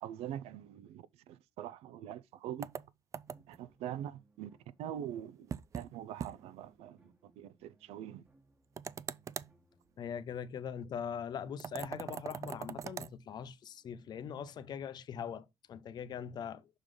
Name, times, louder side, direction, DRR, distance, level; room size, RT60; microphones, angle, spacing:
voice 1, 0.0-2.7 3.5-4.5 4.8-8.2, right 10 dB, 85° right, 0.6 m, -44 dB
sound 1, 2.6-3.6 5.5-5.9 6.2-6.3 6.7-6.8 8.8-9.5 11.6-13.1, right 7 dB, 30° right, 0.3 m, -42 dB
sound 2, 3.3-10.1, right 3 dB, 15° right, 1.3 m, -69 dB
voice 2, 10.0-16.7, left 7 dB, 45° left, 0.6 m, -41 dB
6.4 x 3.8 x 5.1 m
cardioid pair, 155°, 10 cm